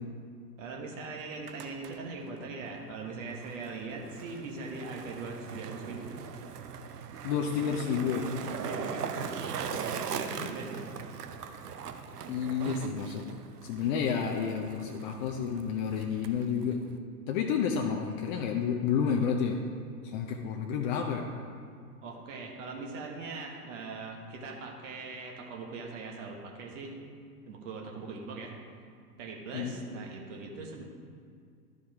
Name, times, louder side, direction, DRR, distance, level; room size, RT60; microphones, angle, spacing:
voice 1, 0.6-6.1 8.6-10.9 20.4-20.6 22.0-27.0 27.5-28.6 29.2-30.8, right 3 dB, 50° right, 0 dB, 1.3 m, -41 dB
Skateboard, 1.3-17.0, right 7 dB, 75° right, 0.7 m, -41 dB
voice 2, 7.2-8.3 10.4-10.5 12.3-13.3 13.6-16.8 17.3-19.6 20.0-21.2 29.5-29.7, left 7 dB, 30° left, 1 dB, 0.5 m, -30 dB
12.0 x 4.9 x 3.6 m, 2.2 s
figure-of-eight pair, 100°, 48 cm